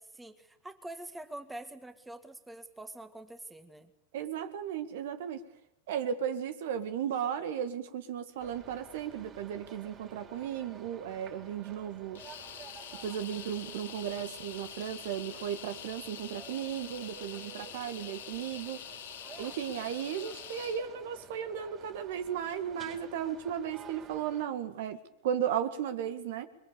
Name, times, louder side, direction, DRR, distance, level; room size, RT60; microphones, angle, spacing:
voice 1, 0.2-3.9, right 1 dB, 5° right, 9 dB, 1.9 m, -45 dB
voice 2, 4.1-5.4 5.9-12.2 13.0-18.8 19.4-25.0 25.2-26.5, right 9 dB, 55° right, 10 dB, 1.9 m, -35 dB
sound 1, 8.4-24.4, right 7 dB, 30° right, 5.1 m, -52 dB
sound 2, 12.1-20.8, left 10 dB, 65° left, 2.6 m, -46 dB
27.5 x 22.5 x 6.9 m, 0.82 s
figure-of-eight pair, 95°, 0 cm